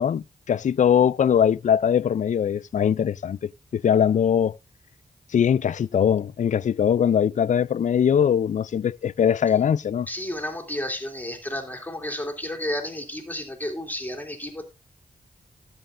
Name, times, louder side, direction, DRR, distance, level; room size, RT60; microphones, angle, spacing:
voice 1, 0.0-4.6 5.3-10.1, left 8 dB, 55° left, 0.4 m, -21 dB
voice 2, 10.1-14.6, left 1 dB, 10° left, 2.6 m, -32 dB
14.0 x 7.7 x 2.5 m
cardioid pair, 75°, 16 cm